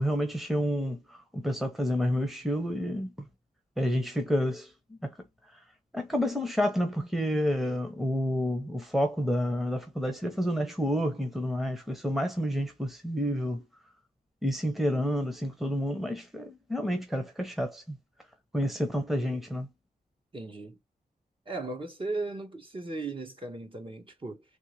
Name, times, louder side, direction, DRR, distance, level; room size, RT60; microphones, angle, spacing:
voice 1, 0.0-3.1 3.8-5.1 5.5-5.6 5.9-13.6 14.4-18.0 18.5-19.7, equal, ahead, 1.1 m, -29 dB
voice 2, 20.3-20.8 21.5-24.4, right 3 dB, 35° right, 1.5 m, -36 dB
3.6 x 3.4 x 3.2 m
wide cardioid pair, 125°, 16 cm